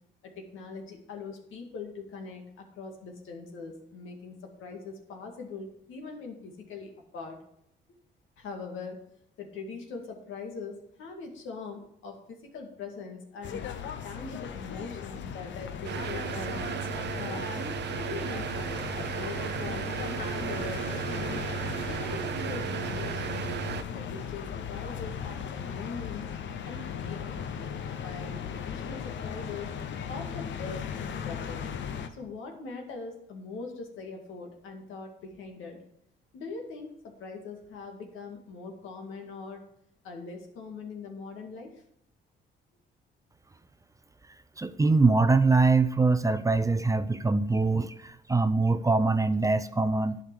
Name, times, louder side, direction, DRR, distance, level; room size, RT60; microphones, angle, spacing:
voice 1, 0.2-7.4 8.4-9.0 9.4-13.7 14.0-16.6 17.2-21.4 21.8-23.5 23.9-26.3 26.6-29.7 30.1-31.7 32.1-35.8 36.3-39.6 40.0-41.8, left 4 dB, 85° left, 2 dB, 2.0 m, -42 dB
sound 1, 13.4-32.1, left 7 dB, 70° left, 0.9 m, -37 dB
sound 2, 15.8-23.8, right 10 dB, 60° right, 0.6 m, -34 dB
voice 2, 44.6-50.2, right 3 dB, 15° right, 12 dB, 0.5 m, -23 dB
11.0 x 5.0 x 6.2 m, 0.74 s
cardioid pair, 90°, 20 cm